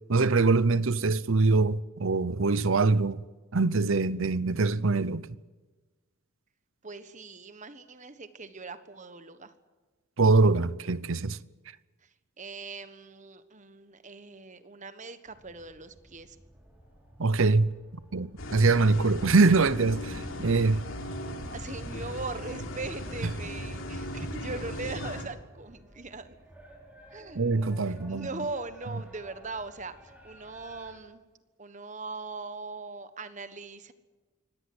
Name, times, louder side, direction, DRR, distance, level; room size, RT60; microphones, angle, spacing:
voice 1, 0.1-3.2 3.5-5.3 10.2-11.4 17.2-17.7 18.1-20.8 27.3-28.3, right 3 dB, 65° right, 0.8 m, -23 dB
voice 2, 6.8-9.5 12.0-16.4 21.5-26.4 27.1-27.4 27.8-31.2 31.6-33.9, right 3 dB, 35° right, 1.3 m, -40 dB
sound 1, 15.2-31.0, equal, 5° right, 5.2 m, -54 dB
sound 2, 18.4-25.2, left 1 dB, 65° left, 3.3 m, -37 dB
24.0 x 18.0 x 7.9 m
head